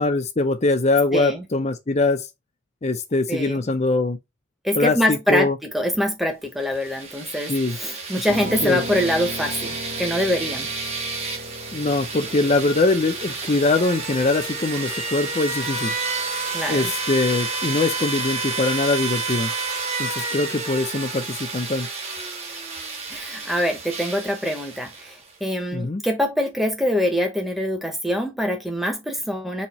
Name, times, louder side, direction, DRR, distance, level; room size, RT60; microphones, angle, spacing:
voice 1, 0.0-2.3 2.8-4.2 4.7-5.6 7.5-7.8 8.6-8.8 11.7-15.9 16.7-19.5 20.0-21.9 25.7-26.0, left 2 dB, 30° left, 0.6 m, -22 dB
voice 2, 1.1-1.5 3.3-3.7 4.6-10.7 16.5-16.9 23.1-29.7, left 1 dB, ahead, 0.9 m, -24 dB
sound 1, 6.6-25.3, right 4 dB, 30° right, 1.0 m, -30 dB
Piano, 8.3-18.4, equal, 50° right, 1.3 m, -38 dB
4.2 x 2.9 x 4.2 m
head